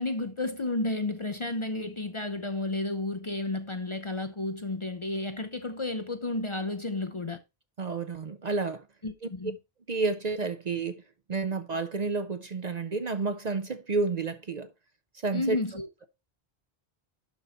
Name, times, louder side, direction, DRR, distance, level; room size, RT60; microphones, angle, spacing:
voice 1, 0.0-7.4 9.0-9.6 15.3-15.9, left 2 dB, 35° left, 0.6 m, -32 dB
voice 2, 7.8-8.8 9.9-11.0 11.3-14.7 15.2-15.6, right 4 dB, 45° right, 0.7 m, -30 dB
11.5 x 4.1 x 4.2 m
omnidirectional pair, 1.1 m